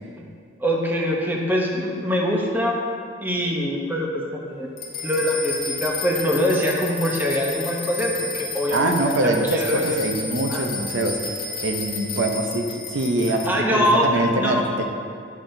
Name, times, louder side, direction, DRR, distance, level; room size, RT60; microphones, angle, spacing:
voice 1, 0.6-2.8 3.2-4.7 5.0-8.9 9.2-10.0 10.5-10.6 13.5-14.6, equal, 10° right, -2 dB, 0.8 m, -23 dB
sound 1, 4.8-13.5, left 4 dB, 55° left, 0.9 m, -32 dB
voice 2, 8.7-11.2 11.6-14.9, right 2 dB, 70° right, 3 dB, 0.6 m, -23 dB
10.0 x 5.9 x 2.6 m, 2.3 s
head